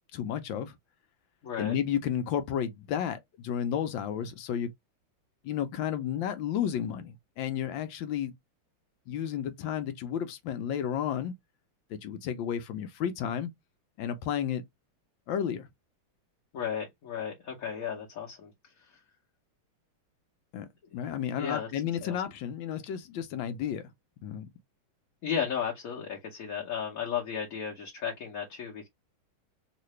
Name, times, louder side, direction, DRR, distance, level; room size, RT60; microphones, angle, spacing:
voice 1, 0.1-0.8 1.6-4.7 5.4-8.3 9.1-11.3 11.9-13.5 14.0-14.6 15.3-15.7 20.5-23.9 24.2-24.5, left 9 dB, 75° left, 1.3 m, -32 dB
voice 2, 1.4-1.8 16.5-18.5 18.9-19.0 21.4-21.7 22.0-22.2 25.2-28.9, left 7 dB, 50° left, 1.2 m, -34 dB
3.8 x 2.5 x 3.1 m
omnidirectional pair, 2.2 m